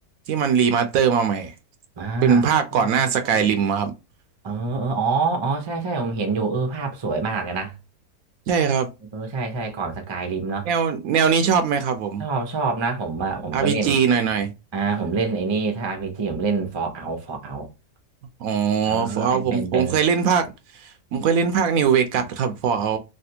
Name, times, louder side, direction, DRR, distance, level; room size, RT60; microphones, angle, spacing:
voice 1, 0.3-1.5 2.2-3.9 8.5-8.9 10.6-12.2 13.5-14.5 18.4-20.5 20.8-23.0, right 7 dB, 70° right, 0.9 m, -21 dB
voice 2, 2.0-2.4 2.7-3.5 4.4-7.7 9.1-10.7 12.2-14.0 14.7-17.7 18.9-20.0, right 4 dB, 35° right, 0.4 m, -26 dB
3.3 x 2.6 x 2.7 m
omnidirectional pair, 1.6 m